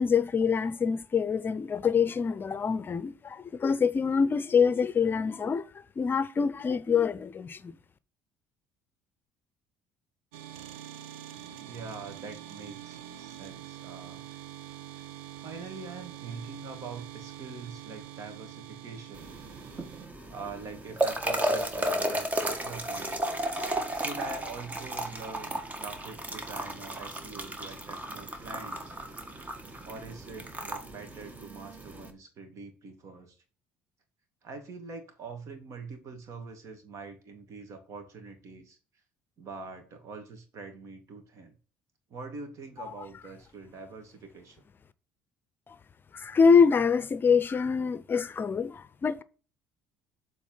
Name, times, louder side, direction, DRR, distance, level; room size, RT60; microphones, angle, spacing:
voice 1, 0.0-5.7 6.0-7.7 46.1-49.2, left 6 dB, 35° left, 0.6 m, -25 dB
sound 1, 10.3-20.1, right 12 dB, 85° right, 0.7 m, -45 dB
voice 2, 11.6-14.3 15.4-19.4 20.3-23.2 23.9-29.0 29.8-33.4 34.4-38.8 39.4-41.5 42.1-44.6, right 4 dB, 55° right, 2.3 m, -44 dB
sound 2, 19.1-32.1, right 1 dB, 25° right, 1.7 m, -34 dB
7.4 x 4.1 x 5.5 m
supercardioid pair, 70°, 6 cm